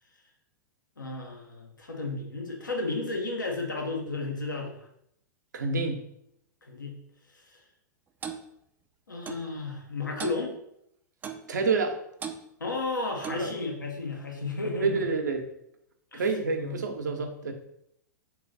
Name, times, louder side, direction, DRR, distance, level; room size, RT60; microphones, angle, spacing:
voice 1, 1.0-4.9 6.6-7.0 7.3-7.6 9.1-10.6 12.6-15.1 16.1-16.2 16.6-16.8, left 3 dB, 80° left, 1 dB, 0.9 m, -33 dB
voice 2, 5.5-6.0 11.5-12.0 13.4-13.5 14.8-15.4 16.1-17.5, right 4 dB, 70° right, 5 dB, 0.7 m, -28 dB
Clock, 8.2-8.4 9.3-9.5 10.2-10.4 11.2-11.5 12.2-12.4 13.2-13.5, right 7 dB, 20° right, 0.4 m, -37 dB
3.7 x 3.0 x 3.8 m, 0.74 s
figure-of-eight pair, 100°, 10 cm